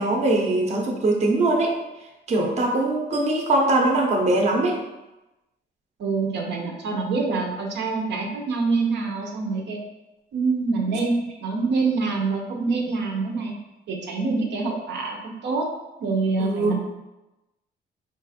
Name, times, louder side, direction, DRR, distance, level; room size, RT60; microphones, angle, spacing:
voice 1, 0.0-1.8 2.3-4.8 16.4-16.8, right 2 dB, 35° right, 0 dB, 0.7 m, -21 dB
voice 2, 6.0-9.8 10.3-13.6 13.9-15.7 16.0-16.8, right 4 dB, 70° right, 0 dB, 0.8 m, -25 dB
4.7 x 2.5 x 4.1 m, 1.0 s
cardioid pair, 135°, 19 cm